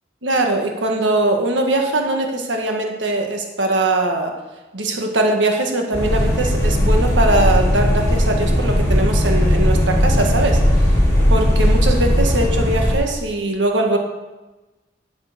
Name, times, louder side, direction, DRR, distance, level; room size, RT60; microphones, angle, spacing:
voice 1, 0.2-4.3 4.7-11.0 11.3-14.0, right 2 dB, 85° right, 2 dB, 1.6 m, -21 dB
sound 1, 5.9-13.0, equal, 15° left, 3.4 m, -17 dB
11.0 x 7.4 x 5.2 m, 1.1 s
head